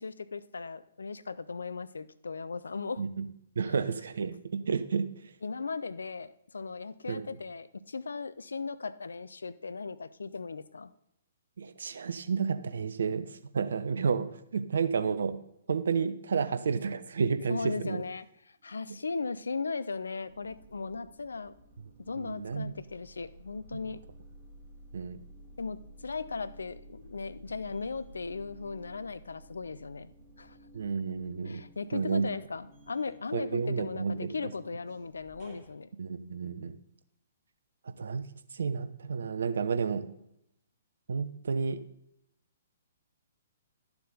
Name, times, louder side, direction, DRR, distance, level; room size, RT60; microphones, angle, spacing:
voice 1, 0.0-3.1 5.4-10.9 17.5-21.5 22.0-24.0 25.6-30.1 30.4-30.6 31.4-35.9, left 4 dB, 70° left, 15 dB, 0.5 m, -37 dB
voice 2, 3.6-5.1 7.1-7.3 11.6-13.3 13.5-15.4 15.7-18.0 22.2-22.7 24.9-25.2 30.7-31.6 31.9-32.3 33.3-34.5 36.0-36.7 38.0-38.2 38.5-40.1 41.1-41.8, right 5 dB, 65° right, 11 dB, 0.7 m, -31 dB
sound 1, 18.6-19.4 19.8-35.7, right 1 dB, 30° right, 2.8 m, -54 dB
11.5 x 7.0 x 3.9 m, 0.79 s
figure-of-eight pair, 120°, 0 cm